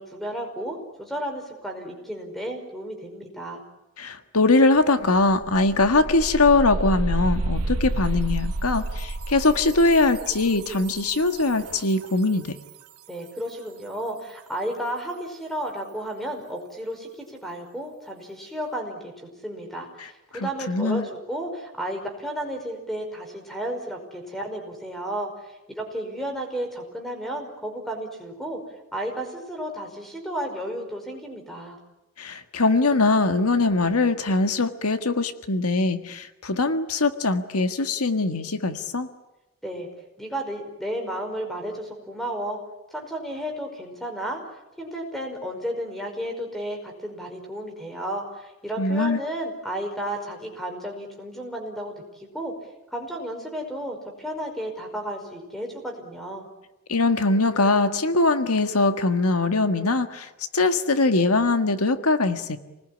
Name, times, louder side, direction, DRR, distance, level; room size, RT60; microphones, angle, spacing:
voice 1, 0.0-3.6 13.1-28.6 28.9-31.8 39.6-39.9 40.2-42.6 42.9-44.4 44.8-52.5 52.9-56.5, right 1 dB, ahead, 4 dB, 5.2 m, -33 dB
voice 2, 4.0-12.5 20.0-20.1 20.3-21.1 32.2-39.1 48.8-49.2 56.9-62.6, left 3 dB, 80° left, 8 dB, 1.6 m, -22 dB
sound 1, 4.8-4.9 5.2-12.0, right 2 dB, 80° right, 1.1 m, -30 dB
28.5 x 20.0 x 10.0 m, 1.0 s
head